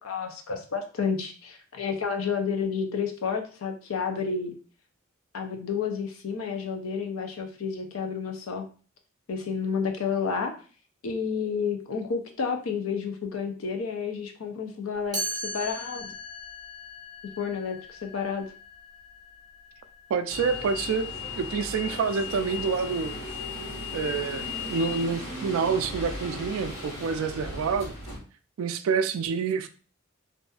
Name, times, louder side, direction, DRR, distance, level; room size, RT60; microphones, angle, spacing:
voice 1, 0.0-4.5 5.3-8.7 9.3-10.5 11.0-16.1 17.4-18.5, left 6 dB, 85° left, 4 dB, 0.5 m, -30 dB
Chime, 15.1-21.0, equal, 20° right, 0.7 m, -39 dB
voice 2, 20.1-21.1 21.4-23.2 23.9-27.9 28.6-29.7, right 5 dB, 80° right, 9 dB, 0.3 m, -27 dB
sound 1, 20.3-28.2, left 3 dB, 70° left, 1.1 m, -36 dB
2.6 x 2.4 x 2.3 m, 0.38 s
head